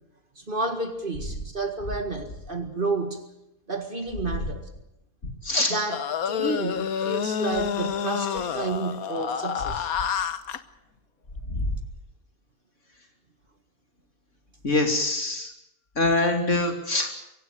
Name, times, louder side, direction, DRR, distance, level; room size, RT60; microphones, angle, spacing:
voice 1, 0.4-3.3 3.7-4.6 5.7-10.0, right 3 dB, 35° right, 2.0 m, -30 dB
voice 2, 5.4-5.7 11.5-11.8 14.6-15.5 16.0-17.1, left 2 dB, 55° left, 3.4 m, -24 dB
sound 1, 5.9-10.6, left 8 dB, 80° left, 1.5 m, -28 dB
24.0 x 16.5 x 9.1 m
omnidirectional pair, 1.5 m